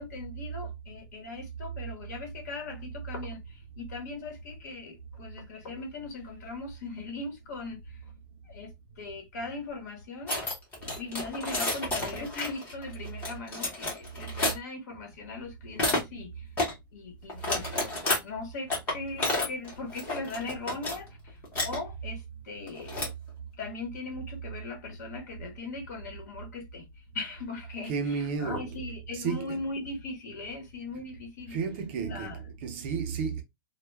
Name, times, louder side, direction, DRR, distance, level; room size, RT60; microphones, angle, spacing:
voice 1, 0.0-8.0 8.4-10.4 11.0-16.5 16.9-23.0 23.6-26.8 27.1-31.6 32.0-32.4, left 3 dB, 50° left, 1.0 m, -39 dB
sound 1, 10.3-14.5 15.8-16.0 16.6-16.7 17.3-18.2 18.7-21.0 21.3-21.8 22.7-23.3, left 2 dB, 15° left, 0.8 m, -30 dB
voice 2, 27.8-29.7 31.5-33.4, right 6 dB, 30° right, 0.4 m, -33 dB
2.1 x 2.1 x 3.1 m
hypercardioid pair, 170°, 12 cm